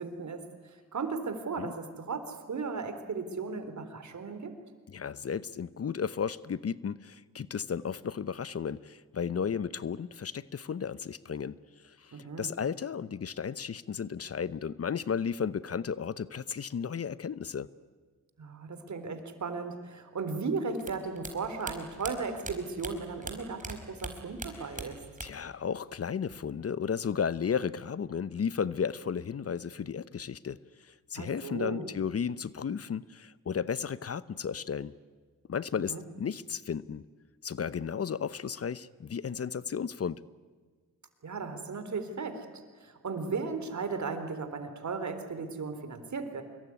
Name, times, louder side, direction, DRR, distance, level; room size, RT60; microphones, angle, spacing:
voice 1, 0.0-4.5 12.1-12.5 18.4-25.0 31.1-31.8 35.9-36.0 41.2-46.4, right 4 dB, 55° right, 9 dB, 3.8 m, -36 dB
voice 2, 4.9-11.6 11.8-17.7 24.6-24.7 25.2-30.6 30.9-34.9 35.5-37.0 37.4-40.2, left 7 dB, 45° left, 17 dB, 0.9 m, -34 dB
sound 1, 20.8-23.7 24.0-25.5 25.8-26.5, right 2 dB, 25° right, 4.8 m, -41 dB
25.5 x 22.0 x 9.8 m, 1.5 s
supercardioid pair, 55°, 33 cm